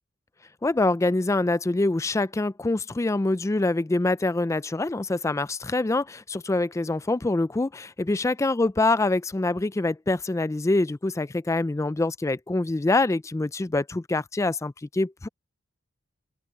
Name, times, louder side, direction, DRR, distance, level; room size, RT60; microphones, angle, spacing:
voice 1, 0.6-15.3, left 2 dB, 15° left, 0.3 m, -25 dB
open air
head